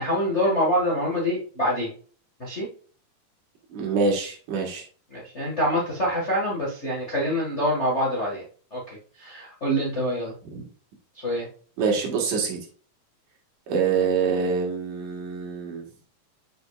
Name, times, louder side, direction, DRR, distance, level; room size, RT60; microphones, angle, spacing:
voice 1, 0.0-1.9 2.4-2.7 5.1-8.4 8.7-8.8 9.2-10.3 11.2-11.5, equal, 35° left, -5 dB, 1.1 m, -25 dB
voice 2, 3.7-4.8 10.4-10.6 11.8-12.6 13.7-15.8, right 5 dB, 65° right, 1 dB, 3.0 m, -25 dB
7.7 x 5.3 x 2.4 m, 0.41 s
omnidirectional pair, 4.1 m